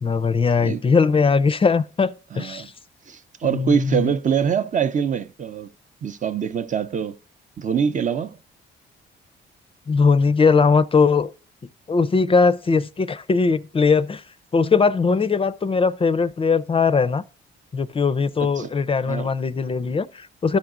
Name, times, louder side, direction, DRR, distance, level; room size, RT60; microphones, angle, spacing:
voice 1, 0.0-2.7 3.4-4.1 9.9-11.3 11.9-14.2 14.5-17.2 17.7-20.6, left 5 dB, 30° left, 0.4 m, -20 dB
voice 2, 2.3-2.7 3.1-5.7 6.0-7.2 7.6-8.4 18.6-18.7 19.1-19.3, right 7 dB, 40° right, 0.6 m, -24 dB
13.0 x 5.8 x 2.5 m
cardioid pair, 105°, 19 cm